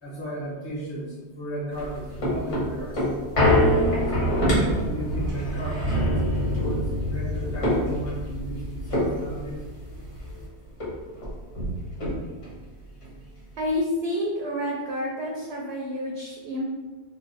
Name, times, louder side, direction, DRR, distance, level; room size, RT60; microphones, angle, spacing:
voice 1, 0.0-3.5 4.2-9.6, right 1 dB, 25° left, -8 dB, 1.1 m, -35 dB
sound 1, 1.7-10.4 10.8-10.9 11.2-12.5 13.0-13.1, equal, 70° left, 1.5 m, -25 dB
voice 2, 13.6-16.6, left 1 dB, 65° right, 0 dB, 0.8 m, -29 dB
3.3 x 2.1 x 3.9 m, 1.3 s
omnidirectional pair, 1.2 m